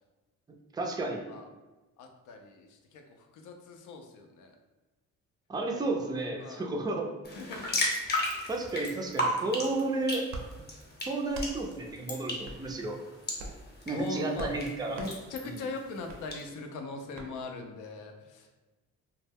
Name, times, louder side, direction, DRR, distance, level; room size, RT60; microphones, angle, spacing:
voice 1, 0.7-1.3 5.5-7.1 8.5-10.3 11.0-13.0 13.9-15.0 15.4-15.6, right 2 dB, 15° right, 1 dB, 0.3 m, -32 dB
voice 2, 2.0-4.5 6.4-6.7 7.3-7.9 13.9-14.5 14.9-18.6, left 3 dB, 80° left, 4 dB, 0.5 m, -41 dB
sound 1, 7.2-16.4, left 1 dB, 35° left, 0.8 m, -36 dB
sound 2, 10.3-10.5 11.3-11.5 12.4-12.6 13.3-13.6 14.3-14.6 14.9-15.1 16.1-16.2 17.1-17.3, right 2 dB, 65° right, 0.5 m, -40 dB
2.2 x 2.1 x 3.3 m, 1.2 s
cardioid pair, 90°, 30 cm